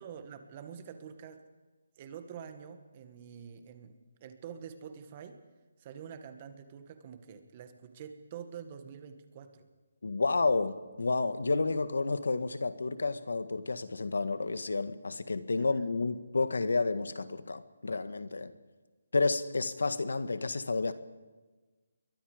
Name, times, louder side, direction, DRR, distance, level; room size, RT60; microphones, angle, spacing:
voice 1, 0.0-1.4 2.0-3.9 4.2-5.4 5.8-9.7, right 7 dB, 25° right, 8 dB, 1.8 m, -46 dB
voice 2, 10.0-18.5 19.1-20.9, left 3 dB, 90° left, 11 dB, 1.7 m, -30 dB
28.5 x 23.0 x 5.2 m, 1.3 s
hypercardioid pair, 170°, 0 cm